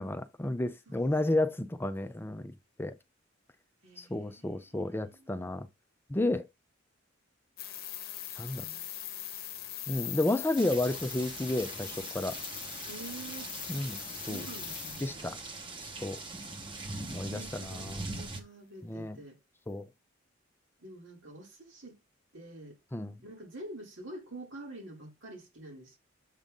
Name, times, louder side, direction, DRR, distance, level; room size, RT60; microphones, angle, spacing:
voice 1, 0.0-2.5 2.8-2.9 4.0-5.7 6.1-6.5 8.4-8.6 9.9-12.4 13.7-14.0 14.3-14.4 15.0-15.4 15.8-16.2 17.1-18.0 18.8-19.2 19.7-19.9 22.9-23.1, left 2 dB, 10° left, 0.4 m, -32 dB
voice 2, 0.9-1.5 3.8-4.7 5.0-5.3 8.5-8.9 12.8-13.5 14.2-15.2 17.1-19.4 20.8-22.0 22.3-22.8 23.2-26.0, right 2 dB, 65° right, 2.3 m, -47 dB
sound 1, 7.6-15.1, left 11 dB, 50° left, 0.9 m, -41 dB
sound 2, 10.6-18.4, right 2 dB, 25° right, 1.0 m, -42 dB
7.3 x 2.6 x 5.3 m
head